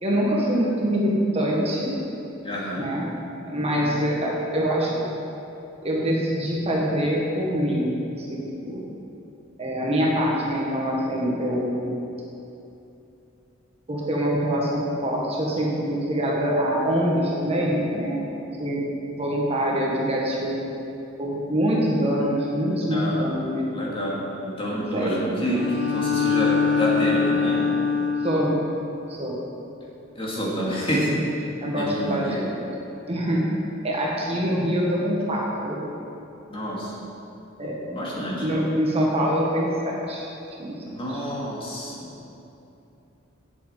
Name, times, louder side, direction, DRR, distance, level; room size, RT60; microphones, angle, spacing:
voice 1, 0.0-1.9 2.8-3.1 3.5-5.0 5.8-8.8 9.6-11.8 13.9-18.3 18.6-18.9 19.2-20.6 21.2-23.7 24.7-25.3 28.2-28.6 29.1-29.4 31.6-32.6 33.1-33.4 33.8-35.9 37.6-37.8 38.4-40.3 40.6-40.8 41.1-41.2, equal, 30° right, -3 dB, 1.6 m, -24 dB
voice 2, 2.4-2.9 22.9-23.4 23.7-27.6 30.2-31.1 31.8-32.4 36.5-36.9 37.9-38.6 40.8-42.2, equal, 25° left, -5 dB, 2.3 m, -28 dB
Bowed string instrument, 25.4-28.6, left 5 dB, 85° left, 1.4 m, -23 dB
8.3 x 7.7 x 8.2 m, 2.8 s
head